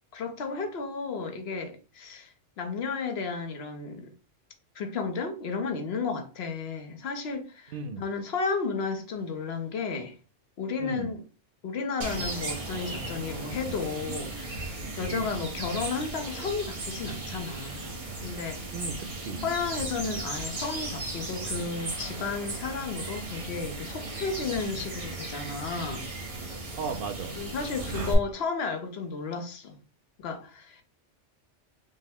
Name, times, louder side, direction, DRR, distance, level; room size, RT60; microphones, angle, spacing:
voice 1, 0.1-4.1 4.7-10.2 10.6-11.2 11.6-17.9 18.2-18.6 19.4-26.1 27.4-29.8 30.2-30.8, left 4 dB, 65° left, 1.0 m, -33 dB
voice 2, 7.7-8.0 10.8-11.1 15.1-15.3 18.7-19.4 26.8-27.3, right 5 dB, 60° right, 0.6 m, -35 dB
sound 1, 12.0-28.1, right 2 dB, 35° right, 0.8 m, -36 dB
5.4 x 2.1 x 3.4 m
omnidirectional pair, 1.2 m